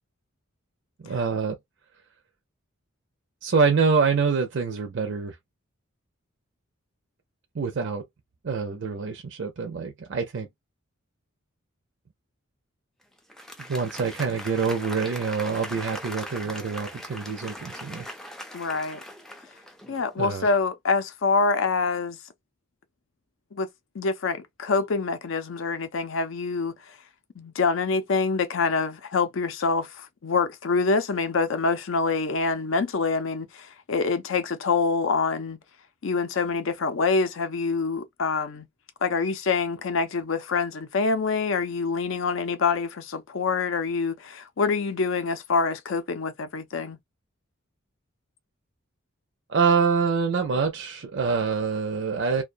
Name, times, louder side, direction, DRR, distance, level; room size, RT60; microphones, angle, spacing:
voice 1, 1.0-1.6 3.4-5.4 7.5-8.0 8.4-10.5 13.7-18.1 20.2-20.5 49.5-52.4, right 5 dB, 55° right, 0.5 m, -25 dB
Applause, 13.2-20.2, equal, ahead, 0.3 m, -40 dB
voice 2, 18.5-19.0 19.9-22.2 23.5-23.7 23.9-27.0 27.4-35.6 36.0-38.7 39.0-47.0, left 4 dB, 70° left, 0.5 m, -26 dB
2.2 x 2.2 x 2.5 m
head